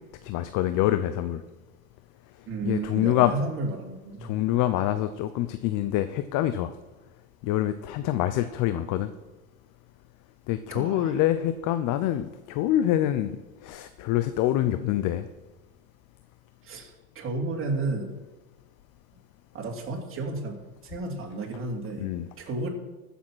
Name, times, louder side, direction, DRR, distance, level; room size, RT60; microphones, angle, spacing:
voice 1, 0.2-1.4 2.6-3.3 4.2-6.7 7.4-9.1 10.5-13.4 13.6-15.3 22.0-22.3, left 13 dB, 45° left, 11 dB, 0.7 m, -25 dB
voice 2, 2.5-4.3 10.7-11.1 16.6-18.1 19.5-22.0 22.4-22.7, right 3 dB, 30° right, -1 dB, 3.2 m, -32 dB
14.5 x 7.1 x 6.2 m, 1.2 s
supercardioid pair, 110°, 43 cm